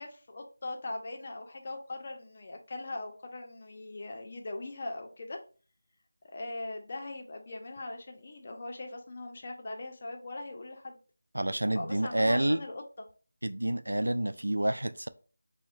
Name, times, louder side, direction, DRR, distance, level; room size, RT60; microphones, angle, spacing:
voice 1, 0.0-5.4 6.2-11.0 11.7-12.8, left 2 dB, 35° left, 3 dB, 0.5 m, -40 dB
voice 2, 11.3-12.6 13.4-15.1, right 1 dB, 85° right, 13 dB, 0.3 m, -28 dB
4.7 x 2.1 x 2.5 m, 0.38 s
figure-of-eight pair, 170°, 0 cm